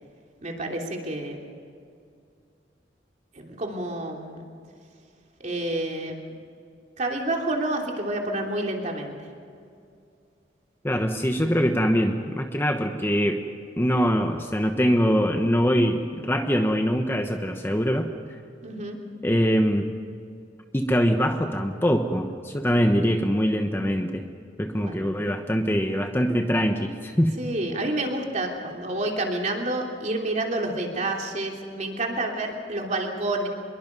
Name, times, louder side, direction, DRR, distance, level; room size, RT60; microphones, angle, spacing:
voice 1, 0.4-1.4 3.3-4.5 5.4-6.2 7.0-9.2 18.6-19.0 24.8-25.1 27.4-33.5, right 2 dB, 40° right, 1 dB, 3.3 m, -29 dB
voice 2, 10.8-13.4 13.8-18.1 19.2-19.9 20.7-24.2 24.6-27.4, equal, 10° left, 5 dB, 1.1 m, -23 dB
26.0 x 22.0 x 5.4 m, 2.4 s
head